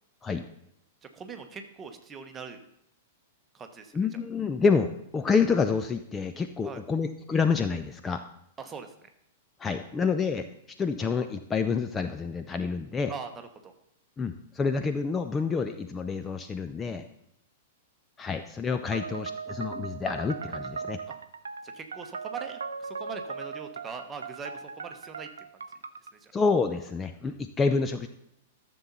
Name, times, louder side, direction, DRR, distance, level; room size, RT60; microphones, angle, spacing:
voice 1, 1.1-2.6 3.5-4.2 6.6-6.8 8.6-8.9 13.1-13.7 18.9-19.0 21.1-21.2 21.6-25.3 26.1-26.3, right 5 dB, 20° right, 6 dB, 1.1 m, -42 dB
voice 2, 3.9-8.2 9.6-10.5 10.8-13.1 14.2-17.0 18.2-21.0 26.3-28.1, left 5 dB, 15° left, 7 dB, 0.5 m, -28 dB
sound 1, 18.9-26.1, right 5 dB, 70° right, 0.5 m, -38 dB
13.0 x 7.0 x 4.0 m, 0.78 s
figure-of-eight pair, 100°, 0 cm